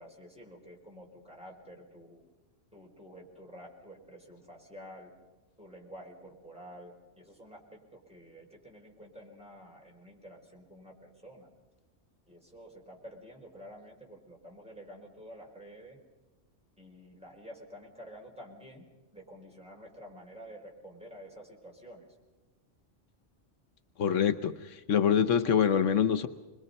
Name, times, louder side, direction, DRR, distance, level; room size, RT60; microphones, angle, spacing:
voice 1, 0.0-2.2 2.7-5.1 5.6-11.5 12.3-16.0 16.8-18.9 19.1-22.1, equal, 5° right, -1 dB, 4.6 m, -50 dB
voice 2, 24.0-26.3, left 8 dB, 80° left, 10 dB, 1.2 m, -25 dB
26.5 x 21.5 x 5.4 m, 1.2 s
omnidirectional pair, 1.3 m